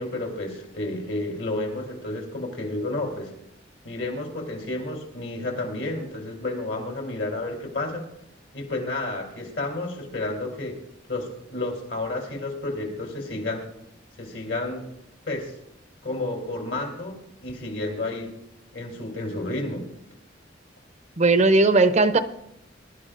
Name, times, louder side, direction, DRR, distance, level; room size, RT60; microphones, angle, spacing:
voice 1, 0.0-3.3 3.8-8.1 8.5-10.8 11.1-13.7 14.2-14.8 15.3-15.5 16.0-18.3 18.7-19.8, left 2 dB, 70° left, 0 dB, 3.2 m, -31 dB
voice 2, 21.2-22.2, right 3 dB, 40° right, 11 dB, 0.6 m, -17 dB
21.5 x 11.5 x 2.5 m, 0.79 s
head